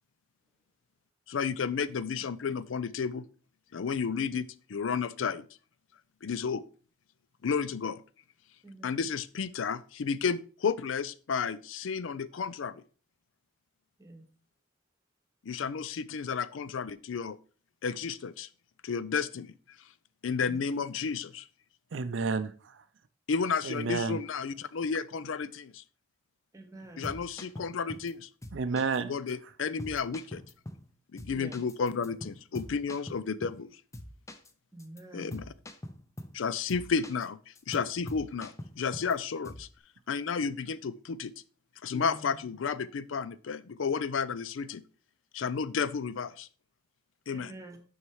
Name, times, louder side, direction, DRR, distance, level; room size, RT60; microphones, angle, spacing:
voice 1, 1.3-3.3 3.7-5.4 6.2-6.6 7.4-8.0 8.8-12.8 15.4-17.4 17.8-18.5 18.8-19.5 20.2-21.5 23.3-25.8 27.0-28.3 29.1-30.4 31.1-33.7 35.1-35.5 36.3-37.4 37.7-39.7 40.1-41.3 41.8-44.8 45.3-46.5 47.3-47.5, left 5 dB, 75° left, 17 dB, 0.5 m, -32 dB
voice 2, 8.6-9.1 14.0-14.3 20.4-20.9 26.5-27.1 31.3-31.6 34.7-35.3 47.3-47.8, right 2 dB, 15° right, 6 dB, 1.1 m, -48 dB
voice 3, 21.9-22.8 23.6-24.2 28.5-29.1, right 4 dB, 70° right, 10 dB, 0.5 m, -31 dB
sound 1, 26.8-28.1 28.4-29.0 29.3-29.4 29.8-30.9 31.2-33.7 33.9-34.5 34.8-35.0 35.3-36.4 36.7-37.3 37.6-39.2 39.4-39.7, left 1 dB, 15° left, 0.5 m, -44 dB
sound 2, 41.9-42.9, left 4 dB, 60° left, 1.3 m, -46 dB
6.4 x 5.6 x 4.6 m, 0.40 s
head